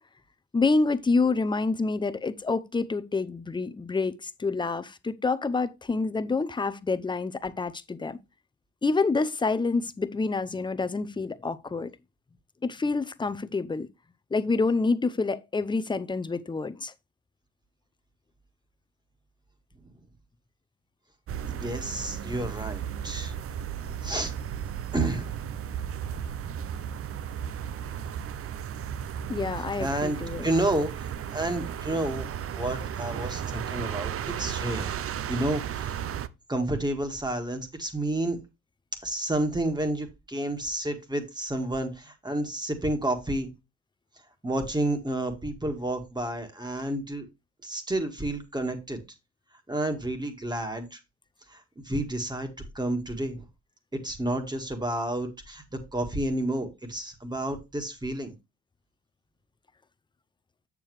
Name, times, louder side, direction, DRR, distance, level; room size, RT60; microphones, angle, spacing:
voice 1, 0.5-8.2 8.8-11.9 12.6-13.9 14.3-16.9 23.9-24.0 26.1-26.5 29.3-30.5, left 3 dB, 15° left, 0.6 m, -27 dB
sound 1, 21.3-36.3, right 9 dB, 50° right, 0.6 m, -34 dB
voice 2, 21.4-23.3 24.0-24.3 24.9-25.5 29.8-32.3 32.5-34.9 35.3-36.0 36.5-38.4 39.0-43.5 44.4-47.3 47.6-49.0 49.7-51.0 51.5-52.5 52.7-53.4 53.9-58.3, right 1 dB, 15° right, 1.8 m, -30 dB
7.4 x 6.8 x 3.2 m
cardioid pair, 90°, 30 cm